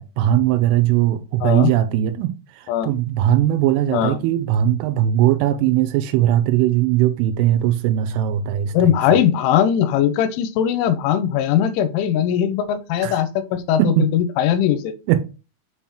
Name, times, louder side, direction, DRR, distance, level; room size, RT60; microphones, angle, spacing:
voice 1, 0.0-9.0 13.0-13.2 13.8-14.1 15.1-15.2, right 12 dB, 85° right, 3.2 m, -19 dB
voice 2, 8.7-14.9, left 9 dB, 85° left, 3.1 m, -20 dB
6.7 x 5.6 x 2.9 m
omnidirectional pair, 5.7 m